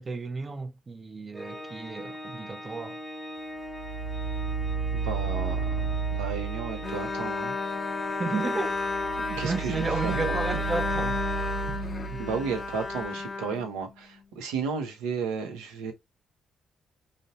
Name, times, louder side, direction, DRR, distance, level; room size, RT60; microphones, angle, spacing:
voice 1, 0.0-3.0 8.2-8.8 9.3-11.2 11.7-11.8 12.1-12.2, right 3 dB, 35° right, 0.5 m, -33 dB
Organ, 1.3-12.1, left 1 dB, 10° right, 0.8 m, -40 dB
sound 1, 3.6-7.3 8.7-13.0, right 5 dB, 75° left, 0.6 m, -33 dB
voice 2, 4.9-7.5 9.4-10.4 12.2-15.9, right 5 dB, 85° right, 0.6 m, -33 dB
Bowed string instrument, 6.8-14.2, left 4 dB, 40° left, 0.4 m, -32 dB
2.6 x 2.0 x 2.8 m
hypercardioid pair, 50°, 0 cm